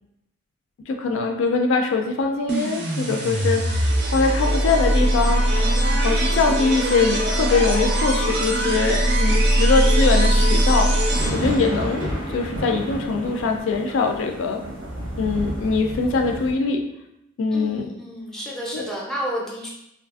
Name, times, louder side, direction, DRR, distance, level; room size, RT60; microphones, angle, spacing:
voice 1, 0.9-5.4 6.0-10.9 11.3-14.6 15.2-16.8 17.4-17.9 18.7-18.8, left 4 dB, 75° left, 4 dB, 0.3 m, -22 dB
sound 1, 2.5-11.6, right 1 dB, 55° right, 0.5 m, -20 dB
sound 2, 11.1-16.5, right 1 dB, 90° right, 0.8 m, -30 dB
voice 2, 17.5-19.7, equal, ahead, -4 dB, 0.4 m, -31 dB
2.8 x 2.4 x 2.3 m, 0.83 s
head